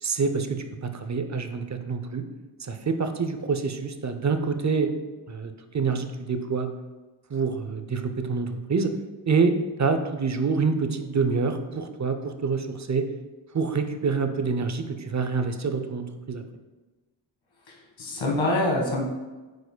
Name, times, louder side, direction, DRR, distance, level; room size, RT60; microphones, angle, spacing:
voice 1, 0.0-2.2 2.7-4.9 5.3-6.7 7.3-8.9 9.3-13.1 13.5-16.4, right 4 dB, 40° right, 8 dB, 0.6 m, -26 dB
voice 2, 17.7-19.1, left 1 dB, 75° left, -2 dB, 1.7 m, -26 dB
9.0 x 4.7 x 2.2 m, 1.2 s
cardioid pair, 70°, 46 cm